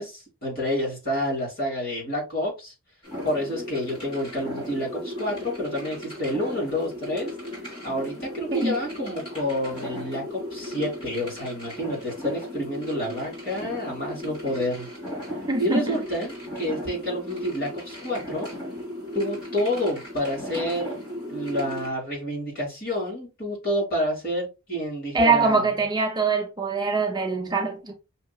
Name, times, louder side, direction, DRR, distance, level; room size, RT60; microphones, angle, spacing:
voice 1, 0.0-2.7 3.2-7.3 7.8-14.9 15.6-18.5 19.1-21.0 21.3-25.7, left 1 dB, 45° left, 2.5 m, -29 dB
sound 1, 3.0-21.9, left 1 dB, 25° left, 2.6 m, -36 dB
voice 2, 15.5-16.0 25.1-27.9, right 4 dB, 20° right, 0.5 m, -23 dB
5.6 x 2.8 x 2.2 m
head